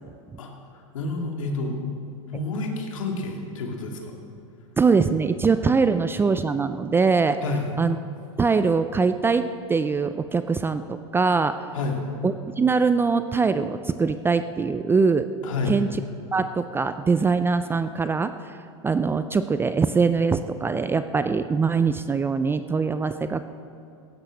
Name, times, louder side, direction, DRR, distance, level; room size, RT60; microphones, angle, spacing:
voice 1, 0.4-1.8 2.3-4.1 7.4-7.7 11.7-12.0 15.4-15.8, left 3 dB, 85° left, 1 dB, 2.4 m, -29 dB
voice 2, 4.8-7.4 7.8-8.0 8.4-11.6 12.2-15.3 15.7-15.9 16.3-18.5 18.8-23.4, right 4 dB, 15° right, 11 dB, 0.4 m, -22 dB
15.5 x 9.8 x 6.3 m, 2.5 s
hypercardioid pair, 115°, 16 cm